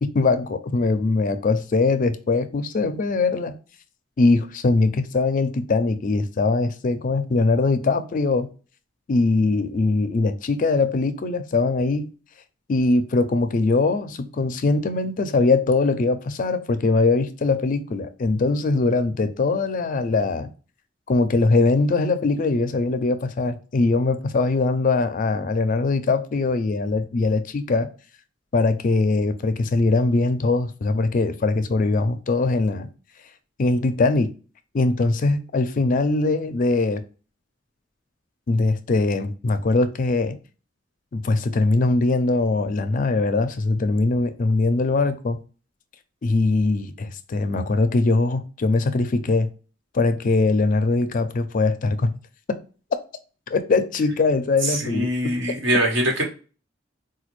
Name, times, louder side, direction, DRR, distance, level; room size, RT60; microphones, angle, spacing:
voice 1, 0.0-3.5 4.2-8.5 9.1-12.1 12.7-20.5 21.1-27.9 28.5-32.9 33.6-34.3 34.7-37.0 38.5-40.4 41.1-45.4 46.2-49.5 49.9-52.1 53.5-55.1, left 3 dB, 45° left, 0.4 m, -21 dB
voice 2, 54.6-56.2, right 1 dB, 80° right, 1.3 m, -23 dB
4.1 x 2.3 x 3.0 m
head